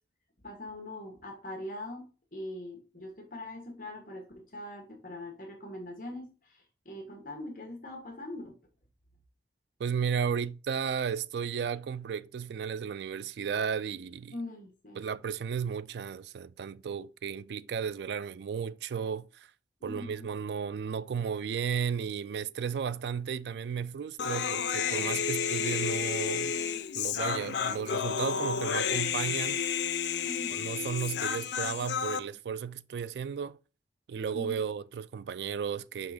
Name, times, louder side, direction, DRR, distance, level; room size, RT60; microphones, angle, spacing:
voice 1, 0.4-8.6 14.3-15.0 19.8-20.3 30.2-30.8 34.3-34.7, left 1 dB, 50° left, 1.4 m, -42 dB
voice 2, 9.8-14.3 15.0-19.5 19.8-26.6 26.9-29.6 30.5-33.6 34.1-36.1, right 7 dB, 70° right, 0.3 m, -34 dB
Human voice, 24.2-32.2, left 7 dB, 80° left, 0.5 m, -31 dB
5.8 x 3.4 x 4.9 m
head